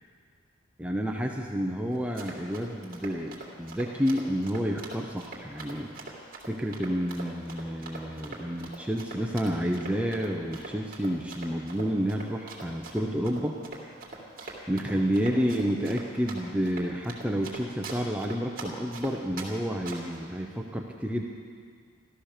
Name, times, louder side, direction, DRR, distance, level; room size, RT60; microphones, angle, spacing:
voice 1, 0.8-5.9 6.4-13.6 14.7-21.2, equal, 5° right, 1 dB, 0.7 m, -30 dB
Run, 1.9-19.5 19.9-20.2, right 3 dB, 45° right, 2.6 m, -42 dB
14.0 x 13.5 x 6.6 m, 2.1 s
head